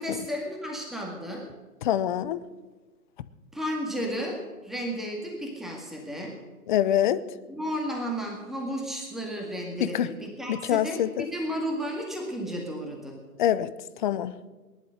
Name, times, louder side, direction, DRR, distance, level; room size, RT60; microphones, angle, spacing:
voice 1, 0.0-1.5 3.5-6.4 7.5-11.0 11.3-13.2, equal, ahead, 1.9 m, -33 dB
voice 2, 1.8-2.4 6.7-7.2 9.8-10.1 10.5-11.3 13.4-13.7 14.0-14.3, left 11 dB, 30° left, 0.6 m, -25 dB
19.5 x 11.0 x 6.4 m
hypercardioid pair, 140°, 48 cm